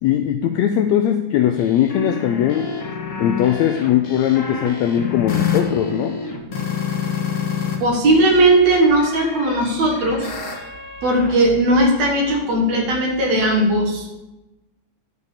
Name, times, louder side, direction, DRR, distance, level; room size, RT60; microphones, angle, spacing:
voice 1, 0.0-2.7 3.2-6.2, left 10 dB, 80° left, 6 dB, 1.6 m, -19 dB
sound 1, 1.6-7.8 8.1-11.3, left 7 dB, 45° left, 2.0 m, -28 dB
voice 2, 7.8-10.6 11.0-14.2, right 1 dB, 60° right, 1 dB, 2.7 m, -17 dB
10.5 x 5.3 x 6.5 m, 1.0 s
omnidirectional pair, 3.7 m